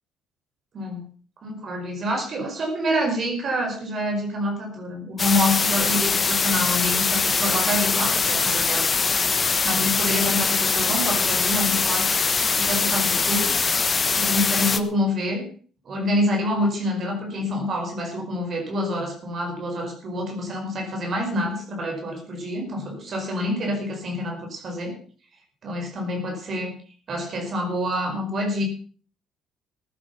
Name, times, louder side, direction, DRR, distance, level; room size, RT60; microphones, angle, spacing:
voice 1, 0.7-1.1 1.4-8.9 9.6-12.1 12.6-13.6 14.2-15.5 15.8-24.9 25.6-26.7 27.1-28.7, left 1 dB, 50° right, 3 dB, 5.0 m, -27 dB
sound 1, 5.2-14.8, left 4 dB, 30° left, 1.4 m, -22 dB
15.5 x 11.0 x 5.9 m, 0.43 s
cardioid pair, 85°, 0 cm